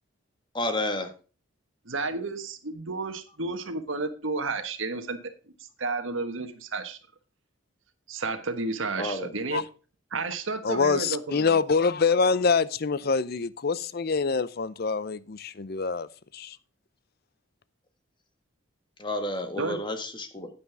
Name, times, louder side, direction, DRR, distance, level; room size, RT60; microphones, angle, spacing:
voice 1, 0.5-1.1 9.0-9.3 19.0-20.5, left 1 dB, 25° left, 1.5 m, -30 dB
voice 2, 1.8-5.3 5.8-7.0 8.1-9.6 10.1-11.6 19.5-19.8, right 3 dB, 75° right, 1.4 m, -31 dB
voice 3, 10.6-16.1 16.3-16.6, left 5 dB, 50° left, 0.6 m, -25 dB
9.8 x 9.5 x 3.4 m
head